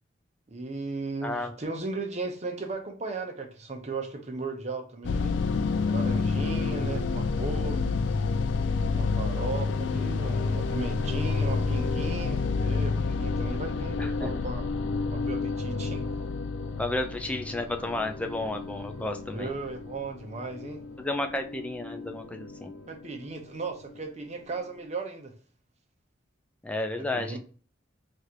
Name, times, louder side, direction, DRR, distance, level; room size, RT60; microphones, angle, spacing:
voice 1, 0.5-5.4 5.9-8.0 8.9-14.7 15.1-16.0 19.3-20.8 22.9-25.3 27.0-27.4, right 3 dB, 40° right, 0.8 m, -36 dB
voice 2, 1.2-1.5 14.0-14.3 16.8-19.5 21.0-22.8 26.6-27.4, left 2 dB, 5° left, 0.4 m, -32 dB
sound 1, 5.0-23.4, left 4 dB, 85° left, 0.4 m, -29 dB
3.2 x 2.6 x 4.3 m
head